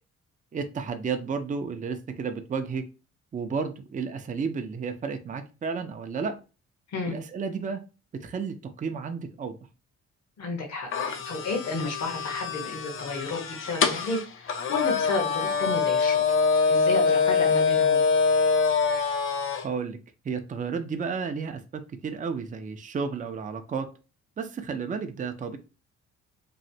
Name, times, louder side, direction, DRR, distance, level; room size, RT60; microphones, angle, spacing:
voice 1, 0.5-2.8 3.3-6.4 7.0-7.8 8.1-9.6 19.6-20.0 20.2-23.9 24.4-25.6, right 5 dB, 25° right, 7 dB, 0.5 m, -32 dB
voice 2, 10.4-10.9 11.3-16.2 16.7-18.0, left 3 dB, 60° left, 1 dB, 1.1 m, -31 dB
sound 1, 10.9-19.7, left 5 dB, 45° left, 0.6 m, -24 dB
3.1 x 2.5 x 2.7 m, 0.32 s
cardioid pair, 90°, 30 cm